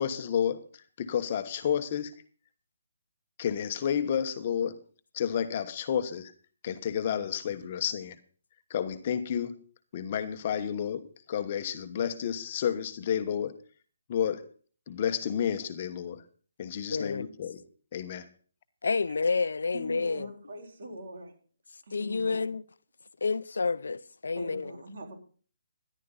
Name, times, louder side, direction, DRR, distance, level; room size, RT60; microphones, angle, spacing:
voice 1, 0.0-2.1 3.4-4.8 5.1-6.3 6.6-8.2 8.7-9.6 9.9-13.6 14.1-14.5 14.9-16.2 16.6-17.6 17.9-18.3, left 8 dB, 35° left, 1.1 m, -31 dB
voice 2, 16.9-17.3 18.8-20.3 21.9-22.6 23.2-24.7, left 4 dB, 75° left, 0.6 m, -29 dB
voice 3, 19.7-21.3 21.8-22.5 24.4-25.2, right 1 dB, 60° right, 4.1 m, -42 dB
13.5 x 11.0 x 4.0 m
hypercardioid pair, 155°, 0 cm